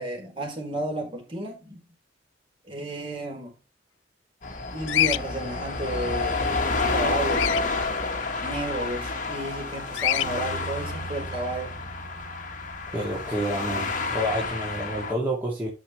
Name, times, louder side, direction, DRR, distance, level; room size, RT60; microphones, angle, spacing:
voice 1, 0.0-1.8 2.7-3.5 4.7-6.5 6.9-7.5 8.4-11.7, right 1 dB, 30° right, 4.8 m, -32 dB
sound 1, 4.4-15.1, left 3 dB, 45° left, 1.7 m, -29 dB
Bird vocalization bird call bird song, 4.9-5.2 7.3-7.6 9.9-10.3, left 12 dB, 90° left, 0.4 m, -24 dB
voice 2, 12.9-15.7, equal, 10° right, 2.5 m, -29 dB
10.0 x 6.3 x 3.3 m
head